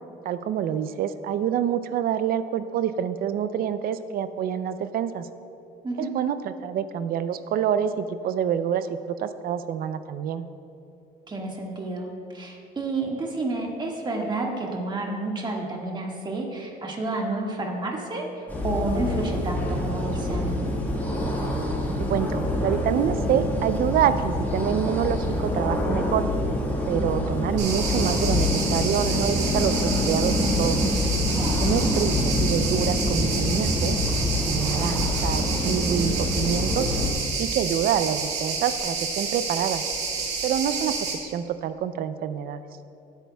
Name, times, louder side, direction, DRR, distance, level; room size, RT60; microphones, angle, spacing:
voice 1, 0.2-5.3 6.0-10.4 22.1-26.2 26.9-30.8 31.6-34.0 34.4-36.9 37.4-39.8 40.4-40.9 41.2-42.6, right 9 dB, 60° right, 12 dB, 0.5 m, -27 dB
voice 2, 11.3-18.3 18.6-20.6 31.3-31.6, right 2 dB, 25° right, 0 dB, 1.8 m, -30 dB
sound 1, 18.5-37.1, left 1 dB, 10° left, 1.7 m, -26 dB
sound 2, 27.6-41.1, right 4 dB, 85° right, 2.1 m, -29 dB
16.5 x 9.0 x 2.3 m, 2.7 s
cardioid pair, 110°, 17 cm